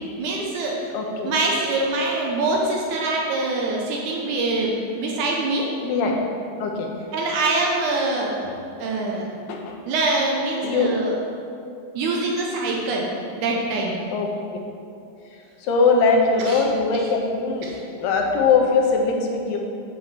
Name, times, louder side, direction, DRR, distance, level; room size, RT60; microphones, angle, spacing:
voice 1, 0.2-0.9 1.2-5.7 7.1-8.4 8.8-9.3 9.9-11.1 12.0-13.1 13.4-14.0 16.4-16.6 16.9-17.1 17.6-17.8, right 2 dB, 75° right, -1 dB, 2.0 m, -24 dB
voice 2, 0.9-1.3 5.8-6.2 6.6-6.9 8.4-8.5 9.4-9.8 10.6-10.9 14.1-14.3 15.3-19.6, left 4 dB, 80° left, 1 dB, 2.6 m, -21 dB
7.6 x 7.0 x 4.2 m, 2.5 s
omnidirectional pair, 4.0 m